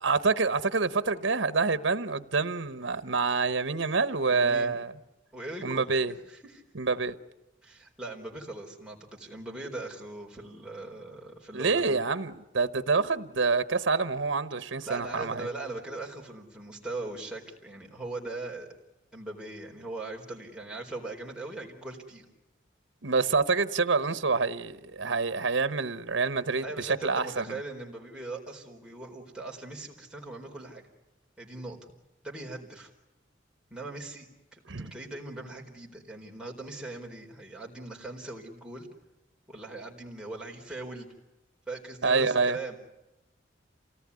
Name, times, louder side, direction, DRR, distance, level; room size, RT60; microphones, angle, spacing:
voice 1, 0.0-4.9 5.6-6.1 6.7-7.1 11.5-15.5 23.0-27.6 34.7-34.9 42.0-42.6, right 4 dB, 85° right, 1.1 m, -27 dB
voice 2, 4.3-4.8 5.3-6.6 7.6-12.0 14.8-18.7 19.1-22.2 26.6-30.9 31.4-31.8 32.2-32.9 33.7-38.9 39.5-41.1 41.7-42.8, right 2 dB, 5° right, 4.2 m, -40 dB
28.5 x 18.5 x 9.7 m
head